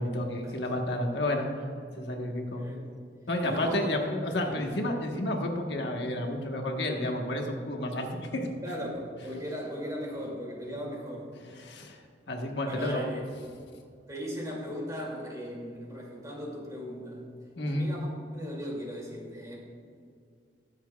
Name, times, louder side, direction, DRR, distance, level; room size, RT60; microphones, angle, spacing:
voice 1, 0.0-1.5 2.0-2.6 3.3-8.5 11.6-12.0 12.3-13.1 17.6-17.9, left 1 dB, 75° left, 2 dB, 1.3 m, -31 dB
voice 2, 3.4-3.9 4.4-4.6 8.6-11.3 12.6-13.2 14.1-17.2 17.7-18.1 18.3-19.6, equal, 20° right, -2 dB, 2.4 m, -37 dB
21.5 x 7.3 x 2.3 m, 2.3 s
head